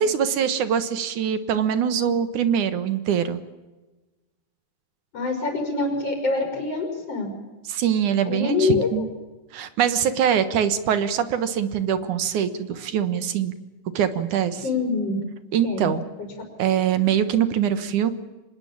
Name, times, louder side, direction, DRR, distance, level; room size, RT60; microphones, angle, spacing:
voice 1, 0.0-3.4 7.7-9.1 9.5-13.5 13.9-14.6 15.5-16.0 16.6-18.1, right 8 dB, 70° right, 11 dB, 2.7 m, -23 dB
voice 2, 5.1-7.3 8.2-9.1 14.5-15.2 15.6-15.9 16.2-16.3, left 3 dB, 45° left, 2 dB, 6.2 m, -25 dB
25.5 x 19.5 x 8.8 m, 1.2 s
omnidirectional pair, 3.7 m